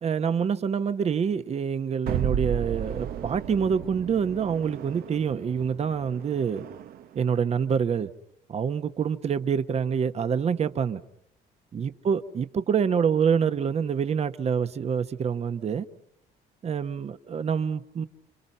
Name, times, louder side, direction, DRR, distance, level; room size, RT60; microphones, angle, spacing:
voice 1, 0.0-6.6 7.1-8.1 8.5-11.0 11.7-15.8 16.6-18.1, right 7 dB, 40° right, 1.1 m, -26 dB
sound 1, 2.1-7.2, right 9 dB, 60° right, 1.0 m, -34 dB
29.5 x 26.5 x 5.6 m
cardioid pair, 110°, 17 cm